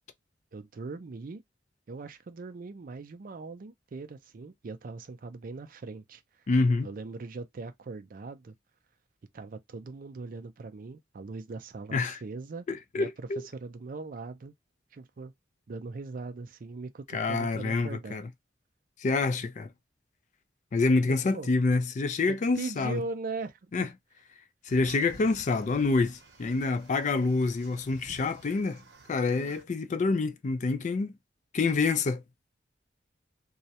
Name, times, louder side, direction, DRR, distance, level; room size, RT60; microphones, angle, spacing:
voice 1, 0.5-1.4 1.9-6.2 6.8-8.5 9.3-12.7 13.0-14.5 14.9-15.3 15.7-18.2 21.0-21.5 22.3-23.9, right 3 dB, 50° right, 0.4 m, -40 dB
voice 2, 6.5-6.9 11.9-12.2 12.7-13.5 17.1-18.3 19.0-19.7 20.7-23.0 23.7-23.9 24.7-28.8 29.1-31.1 31.5-32.2, left 3 dB, 40° left, 0.3 m, -27 dB
sound 1, 24.7-29.6, right 2 dB, 65° right, 0.8 m, -52 dB
2.3 x 2.0 x 2.7 m
head